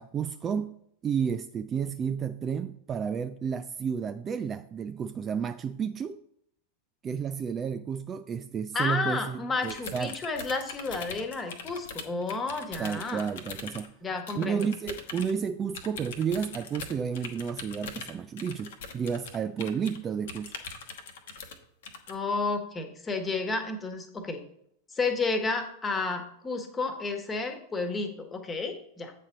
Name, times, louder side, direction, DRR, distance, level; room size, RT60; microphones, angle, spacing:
voice 1, 0.0-6.2 7.0-10.2 12.8-13.9 14.3-20.5, right 7 dB, 25° right, 0.3 m, -31 dB
voice 2, 8.7-13.2 14.0-14.6 22.1-24.4 24.9-29.1, left 3 dB, 15° left, 1.3 m, -31 dB
sound 1, 9.6-13.9 14.3-15.3 15.7-20.0 20.3-21.6 21.8-22.1, left 5 dB, 60° left, 1.0 m, -41 dB
8.6 x 4.3 x 5.1 m
figure-of-eight pair, 90°, 0 cm